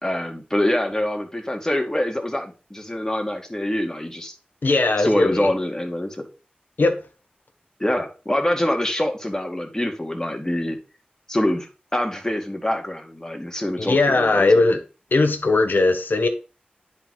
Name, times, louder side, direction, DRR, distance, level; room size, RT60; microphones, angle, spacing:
voice 1, 0.0-4.3 5.0-6.3 7.8-10.8 11.3-14.5, left 1 dB, 15° left, 2.2 m, -25 dB
voice 2, 4.6-5.5 6.8-7.0 13.8-14.8 15.1-16.3, left 3 dB, 85° left, 1.3 m, -19 dB
9.9 x 4.3 x 4.9 m
cardioid pair, 40°, 3 cm